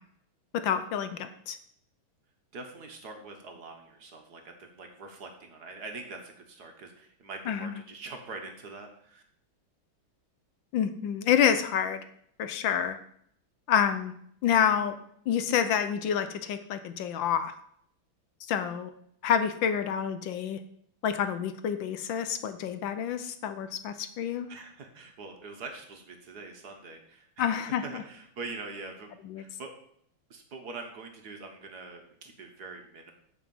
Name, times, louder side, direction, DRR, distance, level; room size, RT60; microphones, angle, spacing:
voice 1, 0.5-1.6 7.5-7.7 10.7-12.0 12.4-13.0 13.7-14.1 14.4-14.9 15.3-17.5 18.4-18.9 19.2-20.6 21.0-24.5 27.4-27.8 29.3-29.4, left 8 dB, 70° left, 10 dB, 1.4 m, -28 dB
voice 2, 2.5-9.2 24.5-27.6 27.8-29.7 30.3-33.1, right 3 dB, 55° right, 4 dB, 1.8 m, -44 dB
9.4 x 4.7 x 7.7 m, 0.67 s
omnidirectional pair, 2.2 m